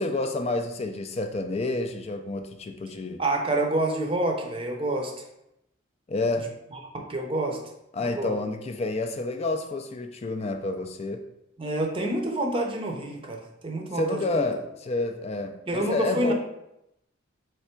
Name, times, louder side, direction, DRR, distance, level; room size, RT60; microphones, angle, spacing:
voice 1, 0.0-3.2 6.1-6.5 7.9-11.2 13.9-16.3, left 2 dB, 30° left, 6 dB, 0.3 m, -29 dB
voice 2, 3.2-5.1 6.9-7.6 8.0-8.4 11.6-14.4 15.7-16.3, right 1 dB, 25° right, 2 dB, 0.6 m, -28 dB
3.4 x 3.4 x 4.3 m, 0.84 s
head